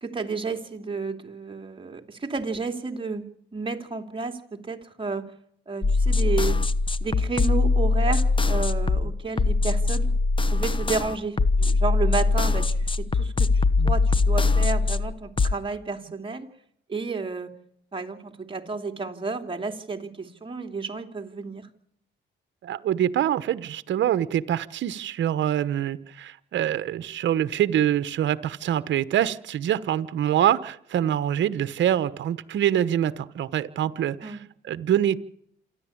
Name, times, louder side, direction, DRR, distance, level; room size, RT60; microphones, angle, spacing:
voice 1, 0.0-5.3 5.7-6.6 7.0-10.1 10.5-16.5 16.9-17.5 17.9-21.7 34.2-34.4, right 4 dB, 25° right, 4 dB, 3.0 m, -31 dB
sound 1, 5.8-15.5, left 3 dB, 25° left, 1.1 m, -22 dB
voice 2, 22.6-34.4 34.6-35.2, right 11 dB, 65° right, 15 dB, 1.1 m, -25 dB
27.5 x 11.0 x 8.7 m, 0.72 s
cardioid pair, 90°, 20 cm